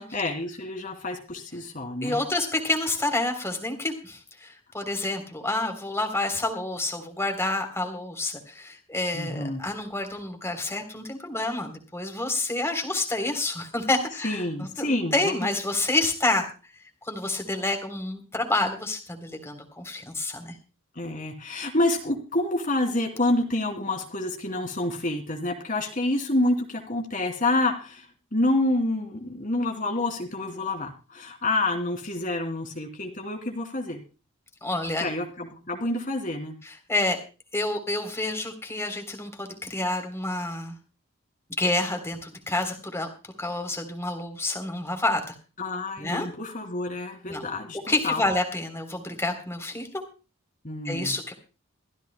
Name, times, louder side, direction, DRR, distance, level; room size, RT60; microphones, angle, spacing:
voice 1, 0.1-2.2 9.1-9.6 14.2-15.4 21.0-34.0 35.0-36.5 45.6-48.2 50.6-51.1, left 2 dB, 40° left, 2 dB, 2.8 m, -28 dB
voice 2, 2.0-16.4 17.0-20.5 34.6-35.0 36.6-37.2 37.5-40.8 41.6-43.1 43.4-45.4 46.0-46.3 47.3-47.5 47.9-50.0 50.8-51.3, left 2 dB, 10° left, 4 dB, 3.4 m, -28 dB
24.0 x 15.5 x 2.2 m, 0.33 s
head